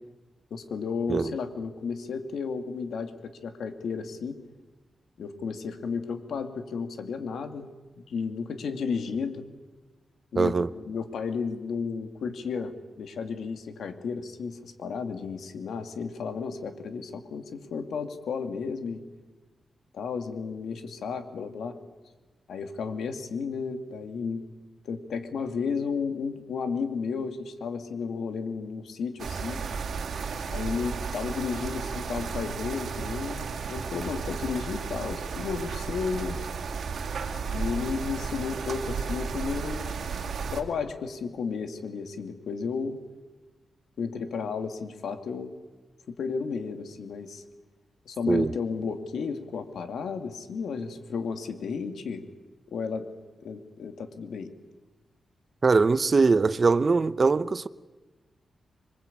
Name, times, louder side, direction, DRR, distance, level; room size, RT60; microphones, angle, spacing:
voice 1, 0.5-4.4 5.2-7.7 8.0-9.5 10.3-19.0 19.9-21.8 22.5-24.4 24.8-29.6 30.5-36.4 37.4-40.1 40.5-43.0 44.0-45.5 46.1-47.4 48.1-52.3 52.7-53.1 53.4-54.5, left 5 dB, 90° left, 2.3 m, -33 dB
voice 2, 10.4-10.7 48.3-48.5 55.6-57.7, right 4 dB, 35° right, 0.8 m, -22 dB
sound 1, 29.2-40.6, right 5 dB, 70° right, 2.3 m, -33 dB
26.0 x 22.5 x 8.6 m
wide cardioid pair, 125°, 0 cm